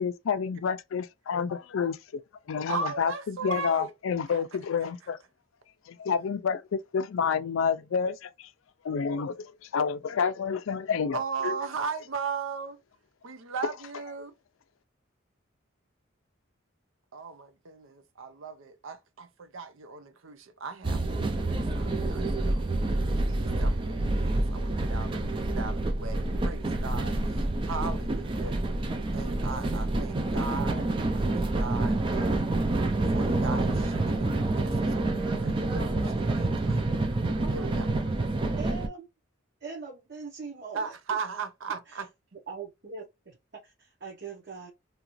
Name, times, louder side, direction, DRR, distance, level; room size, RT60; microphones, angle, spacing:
voice 1, 0.0-2.2 2.5-5.2 5.9-8.5 8.8-11.2 11.4-11.5, left 6 dB, 80° left, 0.4 m, -29 dB
voice 2, 2.7-3.9 4.3-4.4 11.1-12.8 13.2-14.3 17.1-22.6 23.1-28.6 29.1-30.9 31.1-32.5 33.1-36.8 37.5-37.9 40.7-42.1, right 5 dB, 80° right, 0.6 m, -37 dB
sound 1, 20.8-38.9, right 2 dB, 25° right, 0.4 m, -28 dB
voice 3, 37.4-37.9 38.5-39.1 39.6-40.9 41.9-42.0 42.3-44.7, right 4 dB, 55° right, 0.9 m, -42 dB
2.8 x 2.4 x 3.0 m
head